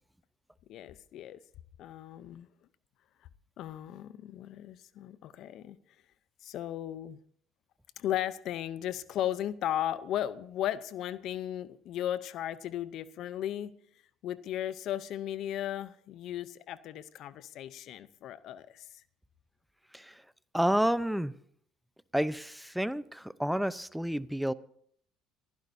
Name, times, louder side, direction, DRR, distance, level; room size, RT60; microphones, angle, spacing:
voice 1, 0.7-1.4 1.8-2.5 3.6-5.8 6.4-7.2 8.0-13.7 14.2-18.9, left 11 dB, 65° left, 0.7 m, -36 dB
voice 2, 20.5-21.3 22.1-24.5, equal, ahead, 0.7 m, -30 dB
28.0 x 15.0 x 2.7 m
supercardioid pair, 75°, 0 cm